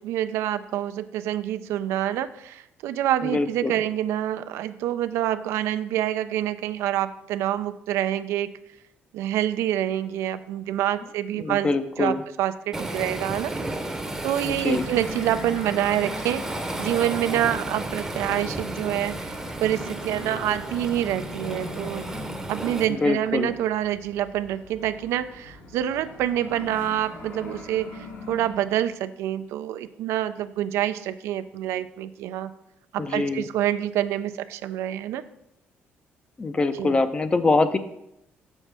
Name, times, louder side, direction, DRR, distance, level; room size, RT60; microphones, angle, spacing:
voice 1, 0.0-8.5 9.1-11.7 12.0-13.5 14.2-16.4 16.8-19.3 19.6-22.0 22.5-32.5 32.9-35.2 36.8-37.0, right 12 dB, 85° right, 12 dB, 0.3 m, -27 dB
voice 2, 3.2-3.7 11.3-12.2 14.4-14.8 22.9-23.5 33.0-33.5 36.4-37.8, left 3 dB, 25° left, 11 dB, 0.5 m, -24 dB
Waves surf, 12.7-22.9, right 1 dB, 10° right, 0.7 m, -33 dB
sound 1, 14.3-28.9, left 2 dB, 80° left, 2.3 m, -41 dB
6.3 x 6.2 x 3.3 m, 0.83 s
cardioid pair, 105°, 5 cm